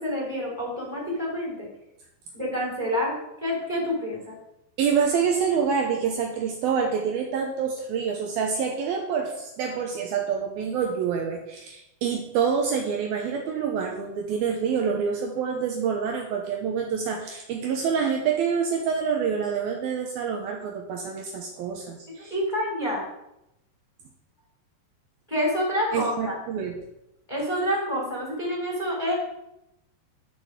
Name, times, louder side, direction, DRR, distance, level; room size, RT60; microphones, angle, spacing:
voice 1, 0.0-1.7 2.3-4.4 22.3-23.0 25.3-26.4 27.3-29.1, equal, 10° left, -3 dB, 3.0 m, -28 dB
voice 2, 4.8-22.3 25.9-26.8, right 6 dB, 70° right, 1 dB, 2.6 m, -27 dB
11.0 x 6.5 x 6.5 m, 0.87 s
omnidirectional pair, 5.0 m